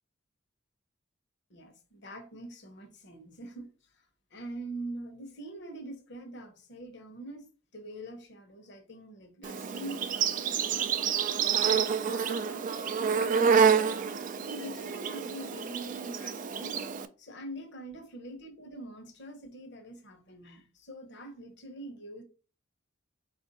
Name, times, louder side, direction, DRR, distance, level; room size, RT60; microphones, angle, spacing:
voice 1, 1.5-4.0 4.3-7.5 7.7-12.6 13.2-13.8 14.4-16.8 17.2-22.2, right 1 dB, 60° left, 0.9 m, -44 dB
Insect, 9.4-17.1, right 7 dB, 40° right, 0.3 m, -28 dB
4.5 x 2.5 x 4.0 m
head